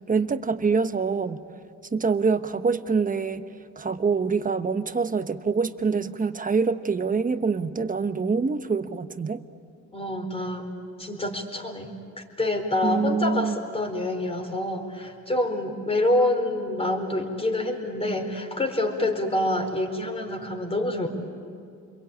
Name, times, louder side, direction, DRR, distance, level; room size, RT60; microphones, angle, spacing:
voice 1, 0.1-1.4 1.9-3.5 3.8-9.4 12.8-13.6, right 5 dB, 25° right, 10 dB, 1.1 m, -25 dB
voice 2, 9.9-10.7 11.0-11.9 12.4-21.1, left 1 dB, 20° left, 3 dB, 4.4 m, -27 dB
29.5 x 22.5 x 8.8 m, 2.3 s
cardioid pair, 90°, 30 cm